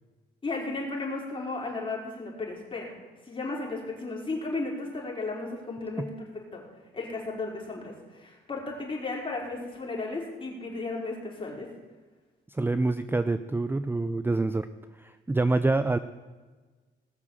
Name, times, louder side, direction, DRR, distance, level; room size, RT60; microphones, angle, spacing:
voice 1, 0.4-2.9 3.3-6.6 6.9-11.7, left 3 dB, 25° left, -2 dB, 5.0 m, -34 dB
voice 2, 12.5-14.7 15.0-16.0, right 2 dB, 10° right, 12 dB, 0.5 m, -26 dB
19.5 x 6.8 x 7.4 m, 1.3 s
cardioid pair, 90°, 20 cm